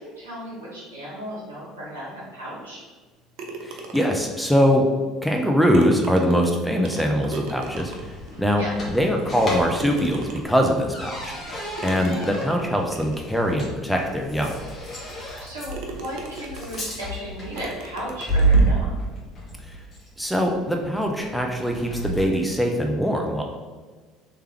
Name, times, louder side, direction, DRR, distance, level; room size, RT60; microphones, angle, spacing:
voice 1, 0.0-2.8 8.2-8.7 15.4-19.0, equal, 80° right, -8 dB, 1.5 m, -35 dB
sound 1, 3.4-4.3 5.4-5.5 5.7-8.3 8.9-9.0 9.7-10.7 11.8-13.3 14.0-14.1 14.6-14.7 15.2-15.4 15.7-17.0 17.6-18.7, right 3 dB, 55° right, 0.5 m, -39 dB
voice 2, 3.6-4.8 5.2-14.6 19.6-19.8 20.2-23.4, equal, ahead, 1 dB, 0.5 m, -23 dB
sound 2, 7.5-22.5, right 2 dB, 35° left, 1.2 m, -29 dB
3.3 x 3.2 x 3.0 m, 1.4 s
figure-of-eight pair, 60°, 0 cm